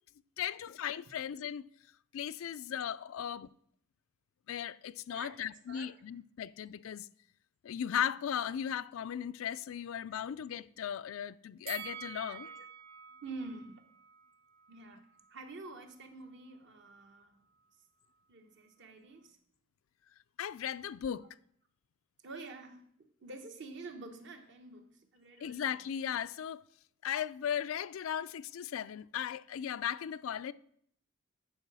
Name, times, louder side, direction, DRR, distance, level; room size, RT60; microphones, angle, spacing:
voice 1, 0.4-1.7 2.1-3.5 4.5-7.1 7.6-12.5 20.4-21.3 25.4-26.6 27.0-30.5, left 9 dB, 80° left, 0.4 m, -37 dB
voice 2, 5.1-5.9 12.3-12.7 13.2-13.8 14.7-17.4 18.3-19.4 22.2-25.7, right 3 dB, 65° right, 1.1 m, -48 dB
Bell, 11.7-14.8 15.2-15.3, right 8 dB, 45° right, 0.6 m, -48 dB
10.5 x 4.7 x 6.1 m
head